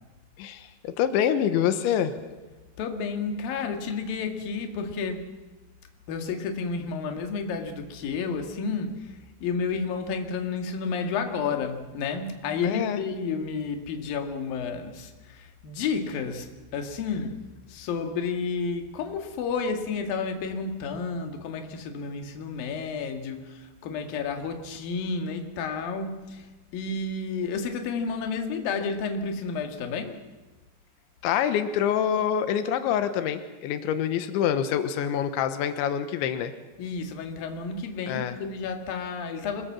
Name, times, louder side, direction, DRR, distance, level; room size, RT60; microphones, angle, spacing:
voice 1, 0.4-2.1 12.6-13.0 31.2-36.5 38.1-38.4, left 9 dB, 90° left, 9 dB, 3.5 m, -26 dB
voice 2, 2.8-5.3 6.1-17.4 17.7-30.2 36.8-39.7, left 5 dB, 60° left, 5 dB, 3.4 m, -31 dB
26.0 x 21.5 x 7.4 m, 1.2 s
omnidirectional pair, 5.2 m